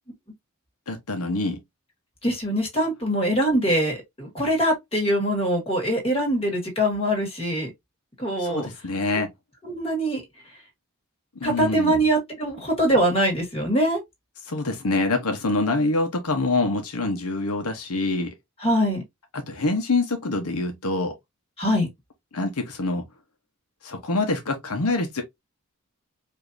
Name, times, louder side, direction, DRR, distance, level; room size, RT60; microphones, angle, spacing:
voice 1, 0.9-1.6 8.4-9.3 11.4-12.0 14.5-18.3 19.5-21.2 22.3-23.0 23.8-25.2, left 2 dB, 85° left, 1.0 m, -25 dB
voice 2, 2.2-7.7 8.2-8.7 9.6-10.2 11.4-14.0 18.6-19.0 21.6-21.9, right 1 dB, 25° left, 2.0 m, -23 dB
5.0 x 2.8 x 2.6 m
head